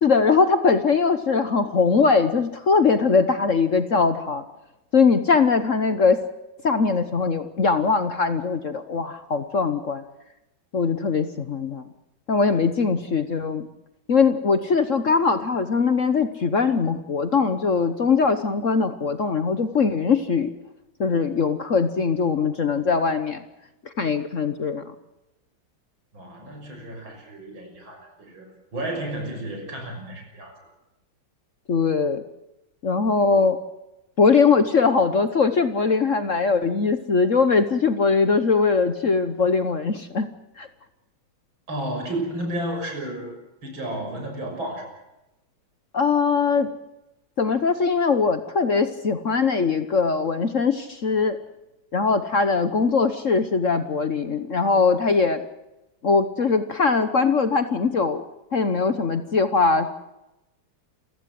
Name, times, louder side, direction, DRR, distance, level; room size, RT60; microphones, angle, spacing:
voice 1, 0.0-4.4 4.9-6.2 6.6-10.0 10.7-11.9 12.3-13.7 14.1-20.5 21.0-23.4 24.0-24.8 31.7-32.2 32.8-33.6 34.2-40.3 40.6-40.7 45.9-46.7 47.4-51.4 51.9-55.4 56.0-58.2 58.5-59.9, left 4 dB, 45° left, 10 dB, 1.3 m, -21 dB
voice 2, 26.1-30.6 41.7-44.9, right 1 dB, 75° right, 3 dB, 7.1 m, -32 dB
28.0 x 16.5 x 7.7 m, 0.93 s
omnidirectional pair, 2.2 m